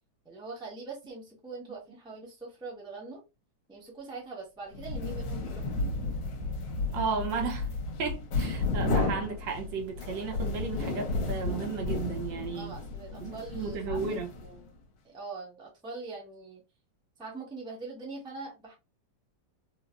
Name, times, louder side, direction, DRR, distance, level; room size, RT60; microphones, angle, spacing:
voice 1, 0.2-3.2 3.7-5.7 12.5-14.8 15.0-16.6 17.2-18.7, right 3 dB, 5° right, 0.6 m, -43 dB
sound 1, 4.7-14.7, left 3 dB, 75° left, 1.4 m, -33 dB
voice 2, 6.9-7.7 8.0-12.7 13.2-14.3, right 5 dB, 80° right, 1.4 m, -34 dB
3.9 x 2.0 x 2.4 m
omnidirectional pair, 2.1 m